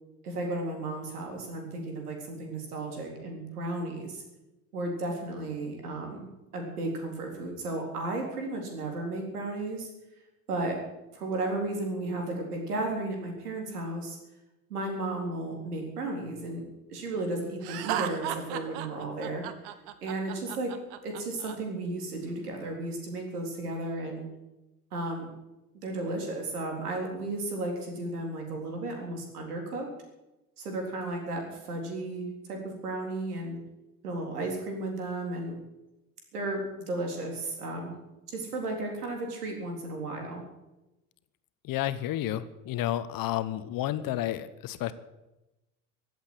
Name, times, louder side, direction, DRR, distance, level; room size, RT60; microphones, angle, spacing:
voice 1, 0.2-4.2 4.7-6.3 6.5-9.9 10.5-10.8 11.1-14.2 14.7-19.4 20.0-20.7 21.0-24.3 24.9-25.3 25.8-29.9 30.6-33.6 34.0-35.6 36.3-37.9 38.3-40.4, right 2 dB, 85° right, 2 dB, 3.9 m, -34 dB
Laughter, 17.6-21.5, right 11 dB, 60° right, 1.4 m, -35 dB
voice 2, 41.6-44.9, left 13 dB, 50° left, 13 dB, 1.2 m, -31 dB
16.0 x 8.2 x 9.8 m, 0.99 s
hypercardioid pair, 75°, 44 cm